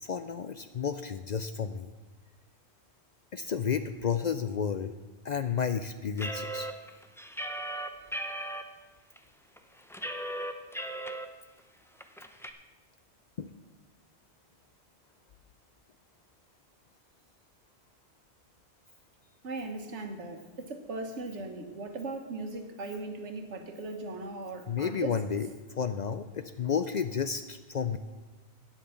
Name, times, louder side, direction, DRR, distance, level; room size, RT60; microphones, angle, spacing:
voice 1, 0.0-1.9 3.3-4.9 5.2-6.7 13.4-13.5 24.7-28.0, left 7 dB, 55° left, 10 dB, 0.5 m, -32 dB
sound 1, 6.2-8.6 9.2-9.3 9.6-11.3 11.6-11.7 12.0-12.5, right 1 dB, 5° left, 0.5 m, -36 dB
voice 2, 19.4-25.2, right 3 dB, 90° right, 5 dB, 1.6 m, -38 dB
10.0 x 8.4 x 7.0 m, 1.2 s
omnidirectional pair, 1.1 m